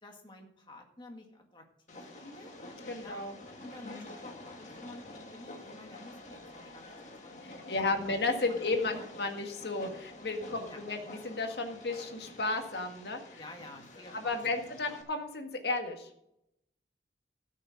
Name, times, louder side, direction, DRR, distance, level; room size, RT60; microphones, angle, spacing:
voice 1, 0.0-2.5 3.0-3.2 3.6-8.2 8.5-9.1 10.5-10.9 13.4-15.0, left 1 dB, 25° left, 2 dB, 1.9 m, -51 dB
Train, 1.9-15.0, left 2 dB, 45° left, 1.9 m, -49 dB
voice 2, 2.9-3.3 3.8-4.1 7.5-13.2 14.1-16.1, left 3 dB, 70° left, 4 dB, 1.8 m, -33 dB
13.5 x 6.6 x 6.5 m, 0.80 s
head